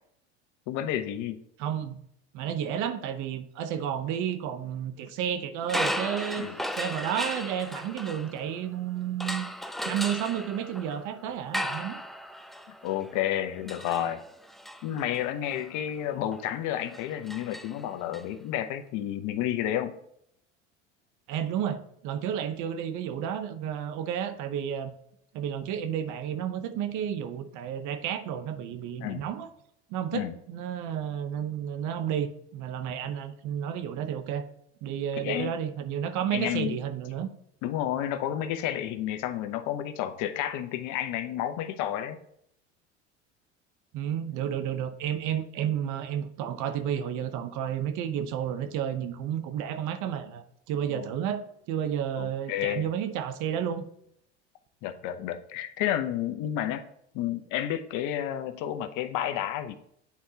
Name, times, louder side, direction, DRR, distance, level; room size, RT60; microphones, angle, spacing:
voice 1, 0.7-1.4 6.4-6.5 12.8-14.2 14.8-20.0 29.0-29.2 30.1-30.3 35.2-35.6 36.3-36.8 37.6-42.2 50.9-51.1 52.2-52.8 54.8-56.8 57.1-59.7, left 11 dB, 65° left, 9 dB, 0.8 m, -31 dB
voice 2, 1.6-2.0 2.3-6.5 6.7-9.5 9.8-12.0 21.3-24.9 25.3-29.5 29.9-34.5 34.8-37.3 43.9-51.4 51.7-53.8, right 9 dB, 60° right, 9 dB, 0.9 m, -31 dB
sound 1, 5.6-8.7 9.2-18.2, equal, ahead, 0.4 m, -36 dB
8.6 x 4.6 x 2.8 m, 0.71 s
hypercardioid pair, 85°, 33 cm